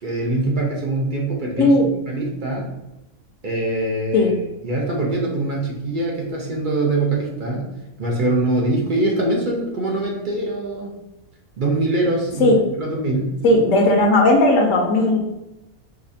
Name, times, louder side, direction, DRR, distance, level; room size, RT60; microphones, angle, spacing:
voice 1, 0.0-1.7 2.1-2.7 3.4-4.3 4.6-7.7 8.0-11.0 11.6-12.5 12.8-13.3, right 2 dB, 55° right, -2 dB, 0.5 m, -23 dB
voice 2, 13.4-15.2, left 2 dB, 70° left, 2 dB, 0.9 m, -15 dB
4.9 x 2.3 x 2.6 m, 0.95 s
omnidirectional pair, 1.5 m